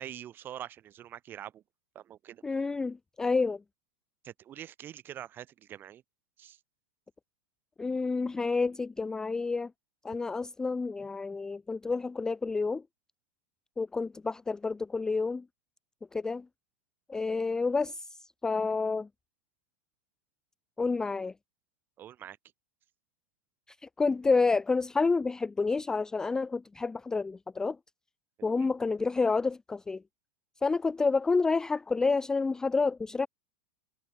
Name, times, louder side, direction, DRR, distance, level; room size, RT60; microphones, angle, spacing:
voice 1, 0.0-1.6 1.9-2.6 4.2-6.0 6.4-6.6 22.0-22.4 28.4-28.7, right 11 dB, 30° right, 3.1 m, -45 dB
voice 2, 2.4-3.6 7.8-9.7 10.0-12.8 13.8-15.4 16.1-16.5 17.1-19.1 20.8-21.3 23.8-27.8 28.4-30.0 30.6-33.3, left 4 dB, 10° left, 0.3 m, -29 dB
supercardioid pair, 130°, 7 cm